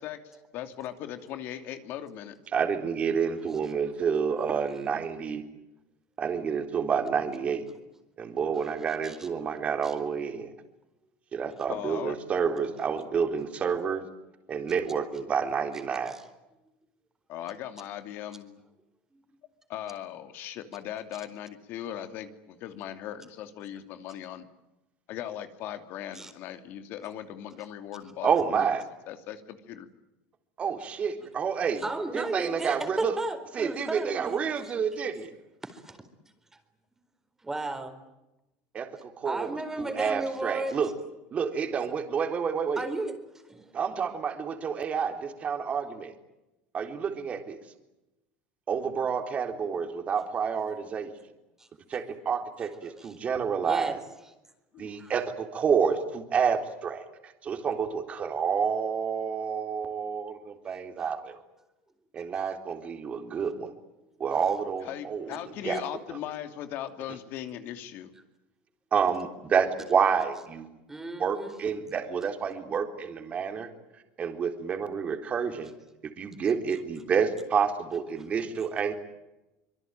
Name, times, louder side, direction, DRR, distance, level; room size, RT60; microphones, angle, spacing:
voice 1, 0.5-2.3 11.7-12.2 17.3-18.6 19.7-24.5 25.1-28.7 29.1-29.9 54.7-55.0 64.8-68.1, left 11 dB, 55° left, 8 dB, 2.9 m, -38 dB
voice 2, 2.5-5.4 6.2-7.6 8.2-10.5 11.3-14.0 14.5-16.2 28.2-28.8 30.6-31.8 32.1-33.1 33.5-35.3 38.7-39.5 39.8-40.9 41.3-42.8 43.7-46.1 46.7-47.6 48.7-51.1 51.9-54.0 54.8-61.4 62.1-63.7 64.2-65.8 68.9-70.7 71.2-73.7 74.2-75.7 76.2-79.0, right 6 dB, 30° right, 6 dB, 3.8 m, -29 dB
voice 3, 8.2-8.7 9.0-9.3 9.8-9.9 16.1-16.3 19.1-19.2 24.0-24.1 26.1-26.3 31.8-34.7 35.6-36.1 36.5-36.6 36.9-37.0 37.4-38.0 39.2-40.9 42.8-43.7 51.6-51.7 52.6-53.2 53.6-54.0 55.0-55.1 63.3-63.5 70.9-71.5 78.2-78.3, right 2 dB, 10° right, 8 dB, 4.3 m, -35 dB
25.5 x 23.0 x 9.2 m, 0.96 s
supercardioid pair, 130°, 4 cm